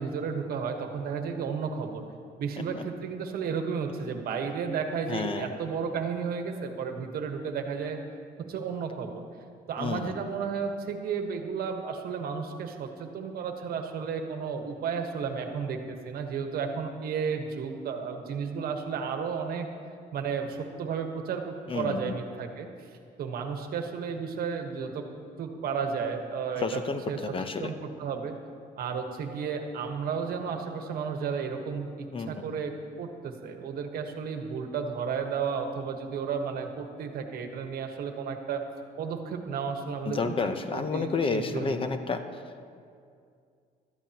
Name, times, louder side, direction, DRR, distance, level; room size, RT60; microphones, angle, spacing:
voice 1, 0.0-2.0 2.4-8.0 8.4-9.2 9.7-19.7 20.1-22.7 23.2-25.0 25.4-26.8 27.1-27.3 27.6-28.3 28.8-32.7 33.0-38.6 39.0-41.8, right 6 dB, 65° right, 5 dB, 1.2 m, -33 dB
voice 2, 5.1-5.6 9.8-10.1 21.7-22.1 26.6-27.7 32.1-32.5 40.0-42.4, left 4 dB, 30° left, 8 dB, 0.7 m, -31 dB
16.5 x 12.5 x 2.9 m, 2.3 s
cardioid pair, 110°, 17 cm